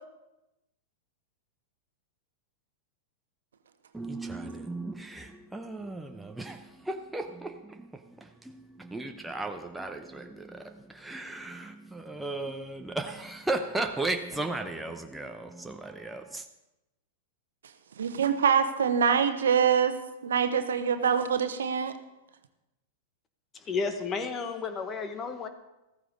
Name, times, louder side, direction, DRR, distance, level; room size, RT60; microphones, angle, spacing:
voice 1, 3.9-16.5, right 2 dB, 5° right, 0.9 m, -36 dB
voice 2, 18.0-20.0 20.2-21.9, right 7 dB, 70° right, 1.0 m, -24 dB
voice 3, 23.5-25.5, left 5 dB, 25° left, 1.5 m, -32 dB
14.5 x 14.5 x 3.9 m
figure-of-eight pair, 95°, 0 cm